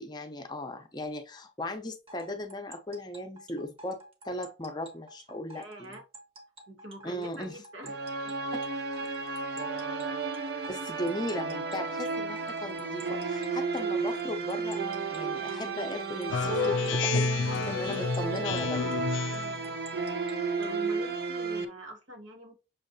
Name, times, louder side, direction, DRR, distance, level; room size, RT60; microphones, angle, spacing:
voice 1, 0.0-4.0 4.2-5.9 7.0-7.5 10.7-14.8 15.1-17.3 17.6-18.8, left 1 dB, 20° left, 6 dB, 0.6 m, -37 dB
sound 1, 2.1-20.8, right 1 dB, 30° right, 1.0 m, -50 dB
voice 2, 5.5-6.0 6.7-8.3 19.3-19.8 20.3-22.6, equal, 85° right, 2 dB, 1.3 m, -46 dB
sound 2, 7.8-21.6, right 4 dB, 55° right, 0.6 m, -33 dB
Speech synthesizer, 16.3-19.6, left 5 dB, 80° left, 0.3 m, -29 dB
6.3 x 2.8 x 2.6 m, 0.31 s
head